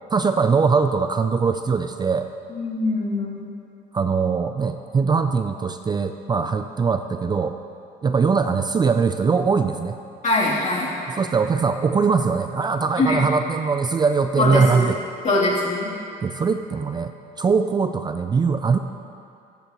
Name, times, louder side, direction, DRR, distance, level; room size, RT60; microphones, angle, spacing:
voice 1, 0.1-2.3 3.9-7.6 8.0-10.0 11.1-15.0 16.2-17.1 17.4-18.8, right 5 dB, 25° right, 8 dB, 0.4 m, -21 dB
voice 2, 2.5-3.5 10.2-10.9 13.0-13.2 14.4-14.8 15.2-15.9, left 2 dB, 45° left, -6 dB, 3.2 m, -22 dB
22.5 x 8.4 x 3.1 m, 2.5 s
cardioid pair, 110°, 17 cm